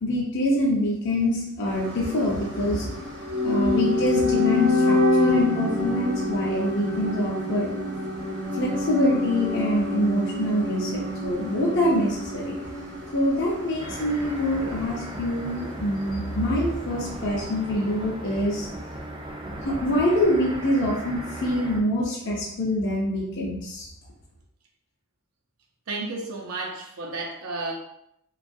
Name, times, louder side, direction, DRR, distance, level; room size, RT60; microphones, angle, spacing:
voice 1, 0.0-3.0 3.4-7.7 8.5-12.5 13.1-18.7 19.6-23.9, left 1 dB, 55° left, -4 dB, 0.6 m, -25 dB
sound 1, 1.6-15.7 16.0-16.1, left 2 dB, 55° right, 0.9 m, -27 dB
sound 2, 13.8-21.8, right 1 dB, 20° right, 0.4 m, -37 dB
voice 2, 25.9-27.7, right 3 dB, 80° right, 0 dB, 0.6 m, -32 dB
3.0 x 2.3 x 2.6 m, 0.76 s
head